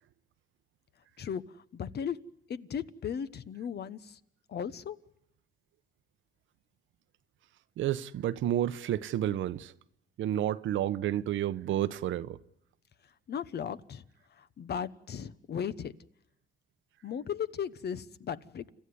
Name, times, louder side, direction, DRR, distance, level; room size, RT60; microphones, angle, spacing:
voice 1, 1.2-2.2 2.5-4.2 4.5-5.0 13.3-14.0 14.4-16.0 17.0-18.7, left 8 dB, 55° left, 1.1 m, -36 dB
voice 2, 7.8-9.7 10.2-12.4, right 12 dB, 75° right, 0.9 m, -30 dB
30.0 x 14.0 x 9.7 m
cardioid pair, 90°, 20 cm